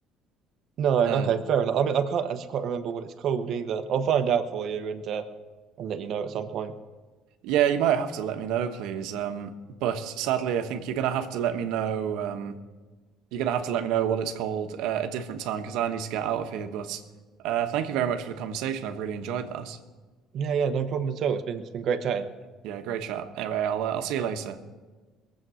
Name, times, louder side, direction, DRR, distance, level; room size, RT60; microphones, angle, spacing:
voice 1, 0.8-5.2 5.8-6.7 20.3-22.3, right 7 dB, 45° right, 6 dB, 1.0 m, -27 dB
voice 2, 7.4-9.5 9.8-12.6 13.3-17.0 17.4-19.8 22.6-24.6, right 9 dB, 80° right, 6 dB, 1.2 m, -28 dB
22.0 x 7.6 x 6.3 m, 1.3 s
cardioid pair, 165°, 0 cm